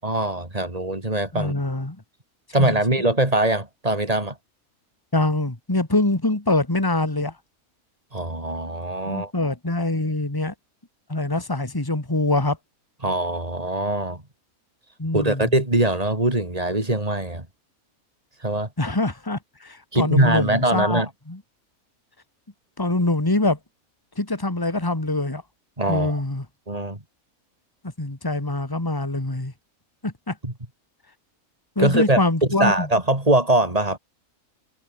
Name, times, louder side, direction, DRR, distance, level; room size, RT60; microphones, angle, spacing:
voice 1, 0.0-1.5 2.5-4.4 8.1-9.3 13.0-14.2 15.1-17.5 18.4-18.7 19.9-21.1 25.8-26.2 26.7-27.0 30.4-30.5 31.8-32.2 32.6-34.0, right 1 dB, 25° right, 4.1 m, -22 dB
voice 2, 1.3-2.0 2.6-2.8 5.1-7.3 9.0-10.5 11.1-12.6 15.0-15.5 18.8-21.4 22.8-23.6 24.2-25.4 25.9-26.4 28.0-29.5 30.0-30.4 31.8-32.9, left 2 dB, 15° left, 2.5 m, -24 dB
omnidirectional pair, 1.5 m